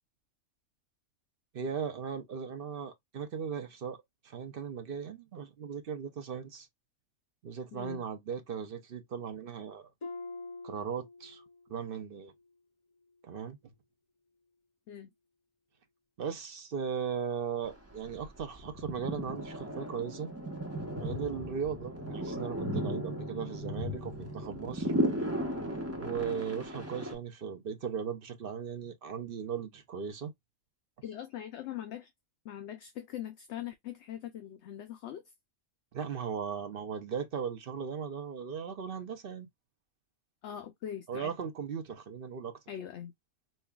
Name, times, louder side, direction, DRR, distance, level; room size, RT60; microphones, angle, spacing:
voice 1, 1.5-6.7 7.4-9.9 10.6-11.4 11.7-12.3 13.2-13.6 16.2-20.3 21.0-24.9 26.0-30.3 35.9-39.5 41.1-42.6, right 7 dB, 55° right, 0.8 m, -37 dB
voice 2, 7.7-8.0 14.9-15.1 31.0-32.1 32.4-35.2 40.4-41.3 42.7-43.1, left 10 dB, 70° left, 0.8 m, -41 dB
Harp, 10.0-11.8 12.1-12.5 13.1-13.2, left 3 dB, 50° left, 0.3 m, -45 dB
sound 1, 17.6-17.7 17.9-27.1, equal, 15° right, 0.9 m, -35 dB
5.4 x 2.3 x 2.3 m
omnidirectional pair, 1.3 m